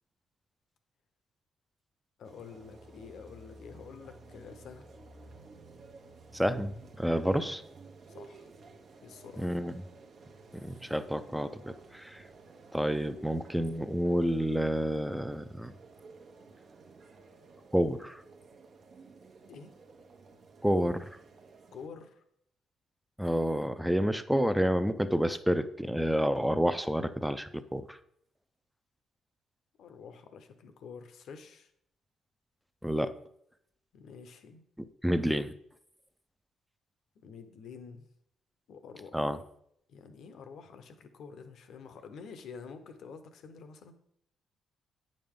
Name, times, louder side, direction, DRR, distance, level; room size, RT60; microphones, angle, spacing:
voice 1, 2.2-4.9 7.2-7.5 8.1-8.5 9.0-9.6 19.5-19.7 21.7-22.2 29.8-31.7 33.9-34.6 37.2-38.1 38.7-39.4 39.9-43.9, left 5 dB, 70° left, 8 dB, 0.8 m, -48 dB
sound 1, 2.2-21.9, right 3 dB, 60° right, 0.9 m, -54 dB
voice 2, 6.3-7.6 9.4-9.8 10.5-12.2 12.7-15.7 17.7-18.2 20.6-21.2 23.2-28.0 32.8-33.2 35.0-35.5 39.1-39.4, equal, ahead, 11 dB, 0.5 m, -29 dB
8.7 x 5.2 x 3.6 m, 0.73 s
cardioid pair, 90°, 0 cm